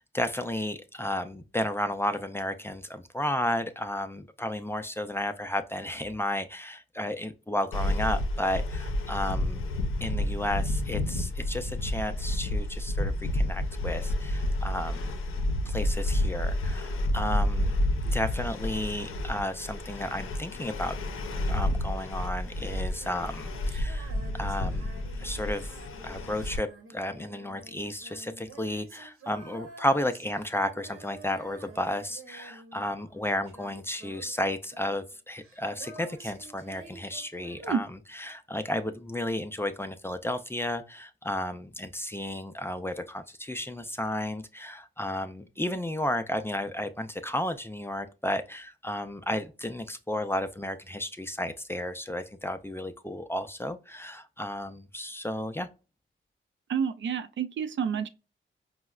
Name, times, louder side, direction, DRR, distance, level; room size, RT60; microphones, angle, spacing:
voice 1, 0.0-9.6 10.0-15.0 15.7-17.7 18.0-21.0 21.5-24.9 25.2-25.8 26.0-37.9 38.1-55.7, left 1 dB, 10° left, 0.4 m, -33 dB
sound 1, 7.7-26.6, left 1 dB, 80° left, 0.5 m, -30 dB
Female singing, 22.9-33.2 33.5-37.9, right 3 dB, 90° right, 1.0 m, -50 dB
voice 2, 56.7-58.1, right 7 dB, 65° right, 0.4 m, -29 dB
4.6 x 2.1 x 2.3 m
cardioid pair, 70°, 21 cm